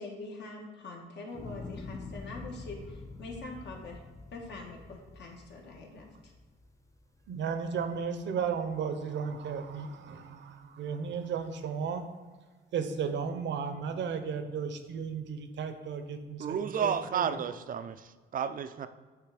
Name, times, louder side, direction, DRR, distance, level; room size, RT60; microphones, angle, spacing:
voice 1, 0.0-4.0 4.3-6.3, left 3 dB, 60° left, 0 dB, 1.5 m, -44 dB
sound 1, 1.3-7.7 8.1-8.7, left 3 dB, 15° left, 0.5 m, -46 dB
voice 2, 7.3-12.0 12.7-17.3, right 6 dB, 65° right, 8 dB, 0.8 m, -34 dB
voice 3, 16.4-18.9, right 7 dB, 45° right, 11 dB, 0.5 m, -32 dB
8.5 x 3.3 x 4.8 m, 1.4 s
cardioid pair, 90°, 20 cm